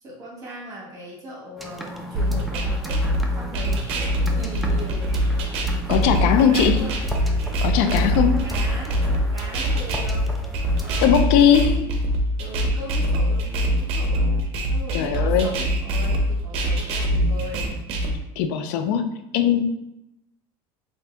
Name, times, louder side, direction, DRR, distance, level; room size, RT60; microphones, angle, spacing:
voice 1, 0.0-3.1 3.3-4.1 4.3-5.1 5.7-7.0 7.7-10.3 10.8-14.4 14.7-17.7, right 1 dB, 25° right, -3 dB, 1.2 m, -38 dB
sound 1, 1.6-11.0, equal, ahead, 0.3 m, -35 dB
sound 2, 2.1-18.2, equal, 50° right, 0.6 m, -23 dB
voice 2, 5.9-6.9 7.6-8.4 11.0-11.7 14.9-15.5 18.4-19.0 19.3-19.6, left 8 dB, 70° left, 8 dB, 0.4 m, -19 dB
2.6 x 2.6 x 3.3 m, 0.88 s
supercardioid pair, 135°, 12 cm